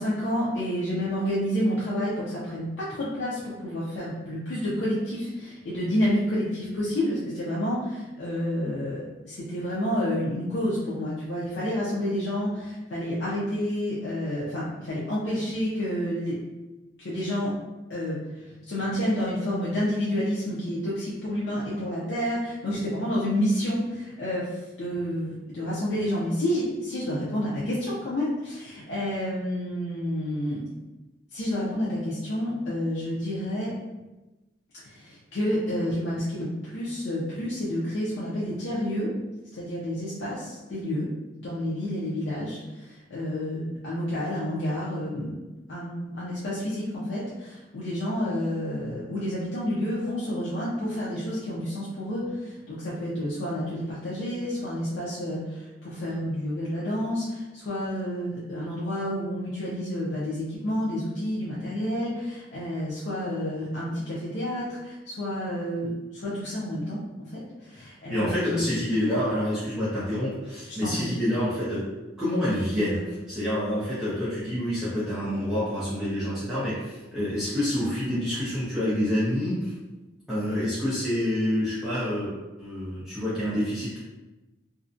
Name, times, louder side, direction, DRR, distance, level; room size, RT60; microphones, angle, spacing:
voice 1, 0.0-16.4 17.0-17.5 17.9-30.6 31.3-33.7 34.8-39.1 39.6-41.1 41.4-45.4 45.7-68.7 70.7-71.1, equal, 65° left, -8 dB, 0.5 m, -29 dB
voice 2, 68.1-71.9 72.2-79.7 80.3-82.3 82.6-84.0, left 1 dB, 5° right, -12 dB, 0.5 m, -27 dB
2.5 x 2.1 x 2.5 m, 1.1 s
head